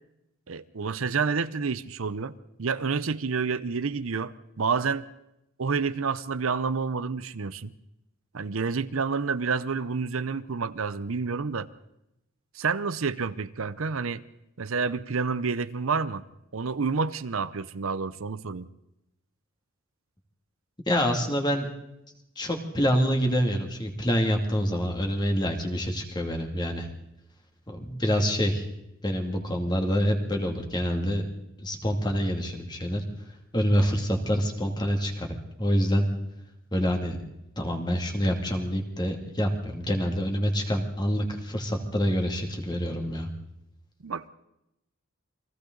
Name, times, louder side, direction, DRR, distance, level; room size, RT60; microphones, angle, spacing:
voice 1, 0.5-2.3 2.6-5.0 5.6-7.7 8.3-11.7 12.5-14.2 14.6-16.2 16.5-18.7 44.0-44.3, right 5 dB, 75° right, 14 dB, 0.7 m, -29 dB
voice 2, 20.9-21.7 22.4-26.9 27.7-28.7 29.0-31.3 31.6-33.0 33.5-36.1 36.7-37.2 37.6-43.3, equal, 20° left, 2 dB, 2.5 m, -26 dB
29.0 x 22.5 x 4.0 m, 0.86 s
head